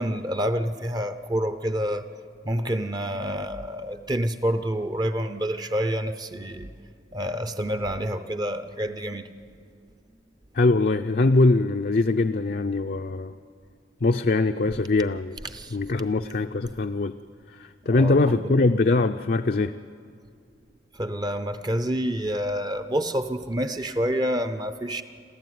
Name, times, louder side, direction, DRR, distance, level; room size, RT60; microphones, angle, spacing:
voice 1, 0.0-2.1 2.4-6.7 7.1-9.3 15.5-15.8 17.8-18.5 21.0-25.0, equal, 20° right, 10 dB, 0.6 m, -28 dB
voice 2, 10.5-13.3 14.0-15.4 15.7-17.1 17.5-19.7, left 3 dB, 50° left, 6 dB, 0.5 m, -22 dB
27.5 x 14.5 x 9.4 m, 2.3 s
head